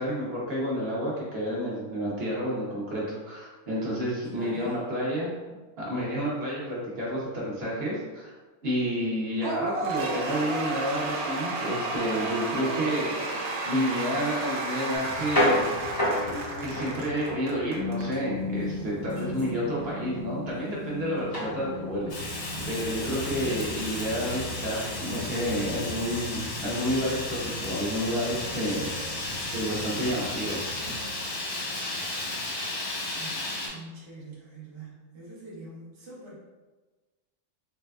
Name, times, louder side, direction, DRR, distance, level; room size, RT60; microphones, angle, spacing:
voice 1, 0.0-5.3 5.8-8.3 8.6-15.6 16.6-22.1 22.7-28.9 29.5-30.6, equal, 50° right, -5 dB, 0.9 m, -30 dB
voice 2, 4.3-4.7 23.1-23.7 33.1-36.4, right 2 dB, 35° right, -6 dB, 0.4 m, -44 dB
Cheering / Applause / Crowd, 9.4-18.1, right 2 dB, 80° right, 1.1 m, -32 dB
sound 1, 14.9-31.1, left 1 dB, 30° left, 0.4 m, -34 dB
Fire, 22.1-33.7, left 2 dB, 55° left, 0.9 m, -34 dB
4.0 x 2.4 x 2.2 m, 1.2 s
omnidirectional pair, 1.6 m